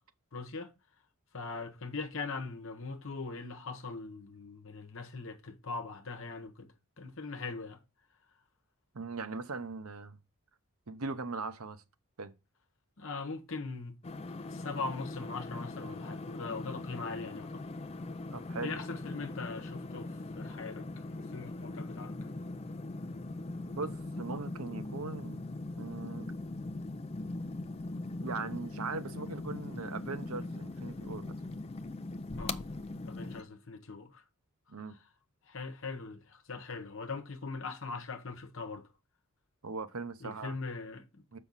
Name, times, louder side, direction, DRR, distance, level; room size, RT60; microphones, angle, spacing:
voice 1, 0.3-0.7 1.3-7.8 13.0-14.0 14.3-17.6 18.6-20.9 21.2-22.1 32.3-32.7 33.0-34.2 35.5-38.9 40.2-41.4, left 4 dB, 65° left, 1.1 m, -41 dB
voice 2, 8.9-10.2 10.9-11.8 12.2-12.3 18.3-18.8 23.7-25.4 25.7-26.3 28.2-31.4 34.7-34.9 39.6-40.5 41.3-41.4, right 3 dB, 80° right, 0.9 m, -40 dB
sound 1, 14.0-33.4, left 2 dB, 30° left, 0.4 m, -41 dB
7.2 x 5.6 x 4.0 m
head